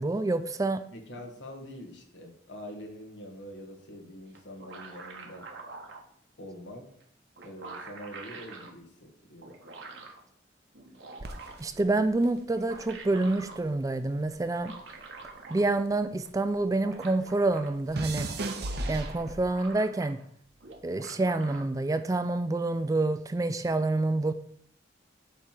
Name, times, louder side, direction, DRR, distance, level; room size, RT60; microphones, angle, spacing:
voice 1, 0.0-0.8 11.6-14.7 15.5-18.3 18.9-20.2 20.8-24.3, right 2 dB, 20° right, 10 dB, 0.3 m, -27 dB
voice 2, 0.9-5.5 6.4-6.9 7.4-9.5, equal, 80° left, 2 dB, 1.5 m, -45 dB
sound 1, 4.3-6.0 7.0-7.1 7.4-8.7 9.4-10.2 10.7-11.8 12.4-13.6 14.5-16.0 16.2-16.3 16.5-17.7 18.1-20.3 20.6-21.6, right 3 dB, 80° right, 1.3 m, -46 dB
sound 2, 11.2-13.7 14.0-16.6 16.9-19.7 20.4-20.8, right 2 dB, 60° right, 0.8 m, -38 dB
8.1 x 3.3 x 5.8 m, 0.65 s
head